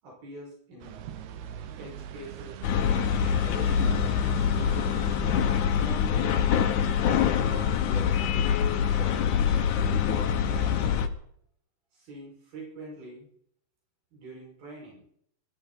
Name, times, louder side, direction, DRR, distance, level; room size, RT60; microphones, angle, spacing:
voice 1, 0.0-1.0 1.8-2.7 3.2-4.3 5.8-6.5 7.4-8.1 8.9-9.3 10.1-11.1 11.9-13.3 14.1-15.0, right 2 dB, 90° right, -4 dB, 7.4 m, -44 dB
sound 1, 0.8-5.9, right 10 dB, 75° right, 1.8 m, -41 dB
sound 2, 2.6-11.1, left 8 dB, 65° left, 2.4 m, -25 dB
22.5 x 14.0 x 4.1 m, 0.67 s
omnidirectional pair, 4.1 m